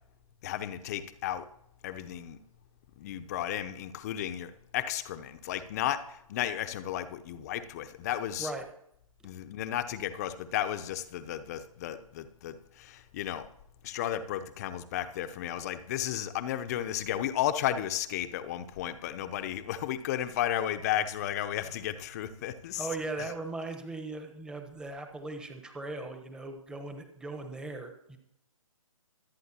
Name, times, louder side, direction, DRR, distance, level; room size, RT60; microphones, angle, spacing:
voice 1, 0.4-1.5 1.8-2.4 3.0-8.5 9.2-13.5 13.8-22.9 23.2-23.3, left 11 dB, 25° left, 10 dB, 0.8 m, -33 dB
voice 2, 22.8-28.2, right 2 dB, 5° right, 5 dB, 1.1 m, -38 dB
25.0 x 9.3 x 2.9 m, 0.76 s
figure-of-eight pair, 145°, 19 cm